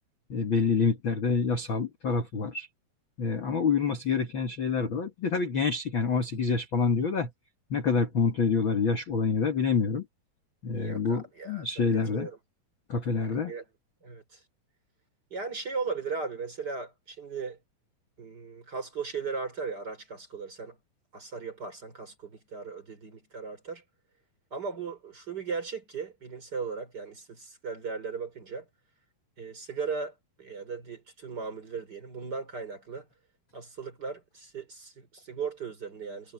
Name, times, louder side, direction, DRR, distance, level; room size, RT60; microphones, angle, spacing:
voice 1, 0.3-2.7 3.2-7.3 7.7-10.0 10.6-12.3 12.9-13.5, left 5 dB, 50° left, 1.5 m, -27 dB
voice 2, 10.7-12.4 13.2-13.6 14.0-14.4 15.3-17.6 18.2-20.8 21.1-23.8 24.5-28.6 29.4-33.1 33.5-36.3, right 5 dB, 25° right, 3.5 m, -37 dB
omnidirectional pair, 4.5 m